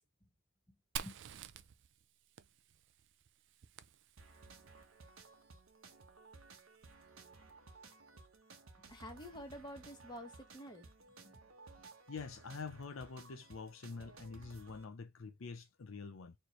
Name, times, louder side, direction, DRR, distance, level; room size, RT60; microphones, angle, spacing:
Fire, 1.0-4.6, right 9 dB, 60° right, 0.4 m, -49 dB
sound 1, 4.2-14.8, right 3 dB, 75° right, 1.1 m, -58 dB
voice 1, 8.9-10.9 11.2-11.4, equal, 20° left, 1.3 m, -49 dB
voice 2, 12.1-16.3, left 4 dB, 65° left, 0.6 m, -46 dB
4.3 x 3.1 x 3.0 m
head